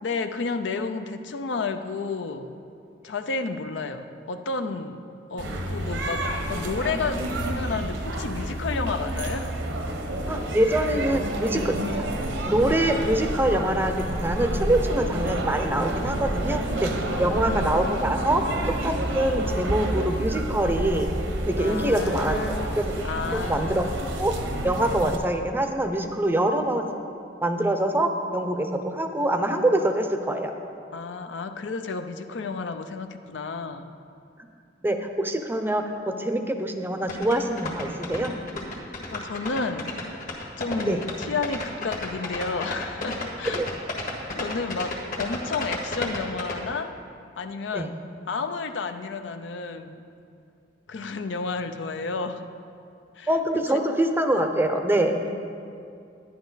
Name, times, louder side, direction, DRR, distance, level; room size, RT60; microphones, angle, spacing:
voice 1, 0.0-2.5 3.0-9.5 17.1-17.7 21.6-23.9 30.9-33.9 39.1-40.0 40.6-43.6 44.4-46.9 47.4-47.9 48.3-50.1 50.9-52.5 53.2-53.3 53.7-53.8, left 4 dB, 70° left, 8 dB, 0.5 m, -31 dB
sound 1, 5.4-25.2, right 1 dB, 75° right, 1.0 m, -29 dB
voice 2, 10.3-12.1 12.5-16.9 17.2-21.1 21.5-23.0 23.3-23.9 24.2-24.3 24.6-26.9 27.4-30.5 34.8-38.3 40.9-41.0 43.5-43.7 47.7-47.9 53.3-55.2, right 1 dB, 10° right, 6 dB, 0.6 m, -25 dB
sound 2, 37.1-46.5, left 2 dB, 50° left, 1.5 m, -32 dB
10.5 x 10.5 x 4.0 m, 2.4 s
head